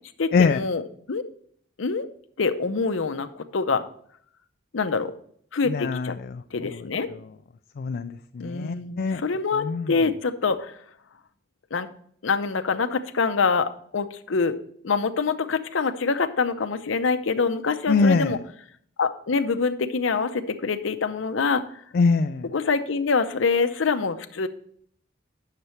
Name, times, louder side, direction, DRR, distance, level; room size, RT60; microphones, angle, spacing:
voice 1, 0.2-0.8 1.1-1.2 1.8-2.1 2.4-3.8 4.7-5.1 5.5-6.1 6.5-7.1 8.4-10.8 11.7-11.9 12.2-14.6 14.8-18.4 19.0-21.6 22.5-24.5, left 4 dB, 80° left, 10 dB, 0.7 m, -25 dB
voice 2, 5.7-6.1 7.8-9.2 9.6-9.9 17.9-18.3 21.9-22.5, left 4 dB, 50° left, 9 dB, 0.3 m, -22 dB
9.5 x 6.7 x 4.3 m, 0.63 s
head